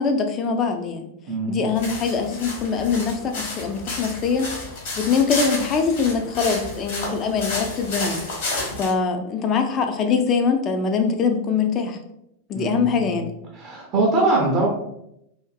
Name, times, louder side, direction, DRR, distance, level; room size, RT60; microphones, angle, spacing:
voice 1, 0.0-1.1 1.5-4.5 5.0-8.2 8.8-12.0 12.5-13.3, left 5 dB, 30° left, 5 dB, 0.3 m, -23 dB
voice 2, 1.3-1.6 12.5-13.2 13.5-14.7, right 2 dB, 35° right, -2 dB, 0.5 m, -22 dB
sound 1, 1.7-8.9, left 2 dB, 55° left, 1.0 m, -31 dB
2.5 x 2.5 x 2.3 m, 0.80 s
figure-of-eight pair, 90°, 0 cm